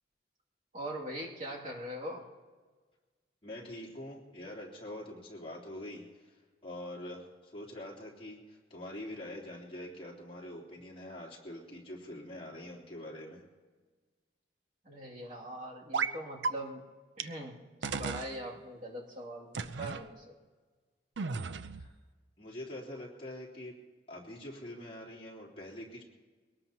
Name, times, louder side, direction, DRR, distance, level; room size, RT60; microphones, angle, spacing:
voice 1, 0.7-2.3 14.8-16.8 17.2-17.6 17.9-19.5 19.8-20.3, right 1 dB, 45° right, -3 dB, 2.6 m, -41 dB
voice 2, 3.4-13.4 21.5-21.9 22.4-23.7 24.1-26.0, left 1 dB, 30° left, -4 dB, 3.3 m, -45 dB
sound 1, 15.9-16.2 16.4-16.5 17.2-17.3 17.8-18.3 19.5-20.0 21.2-21.9, right 5 dB, 80° right, 0.6 m, -34 dB
22.5 x 18.5 x 2.9 m, 1.4 s
head